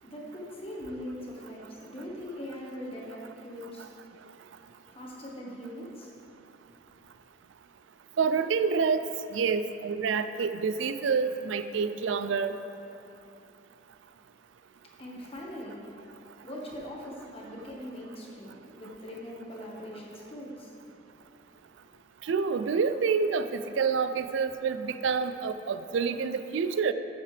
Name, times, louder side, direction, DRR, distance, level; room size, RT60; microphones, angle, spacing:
voice 1, 0.0-3.9 4.9-6.3 6.8-6.9 15.0-15.8 16.4-20.9, equal, 30° left, -4 dB, 1.5 m, -41 dB
voice 2, 8.2-9.0 9.3-12.5 22.2-26.9, right 5 dB, 75° right, 10 dB, 0.4 m, -27 dB
13.0 x 7.4 x 3.4 m, 2.8 s
head